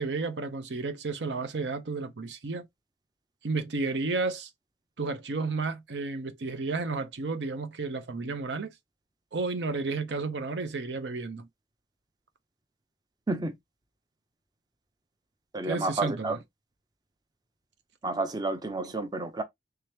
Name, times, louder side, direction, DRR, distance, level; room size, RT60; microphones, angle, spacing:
voice 1, 0.0-2.7 3.4-4.5 5.0-8.8 9.3-11.5 15.6-16.4, right 3 dB, 80° right, 0.6 m, -32 dB
voice 2, 15.5-16.4 18.0-19.4, right 2 dB, 20° right, 0.5 m, -30 dB
3.3 x 2.9 x 3.3 m
head